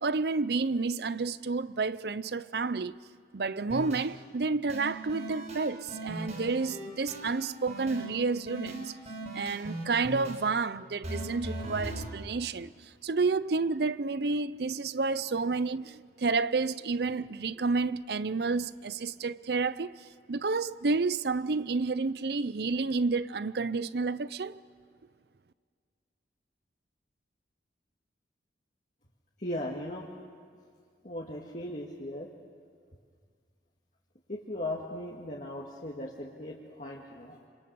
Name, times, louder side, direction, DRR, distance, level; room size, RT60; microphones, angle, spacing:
voice 1, 0.0-3.0 3.3-8.9 9.3-12.7 13.0-19.9 20.3-24.6, right 4 dB, 60° right, 0.6 m, -30 dB
sound 1, 3.7-4.0 4.7-8.1 8.5-10.4 11.0-12.1, right 1 dB, 40° right, 6.1 m, -38 dB
voice 2, 29.4-30.1 31.0-32.3 34.3-37.5, left 1 dB, 40° left, 2.0 m, -38 dB
27.5 x 26.5 x 7.0 m
head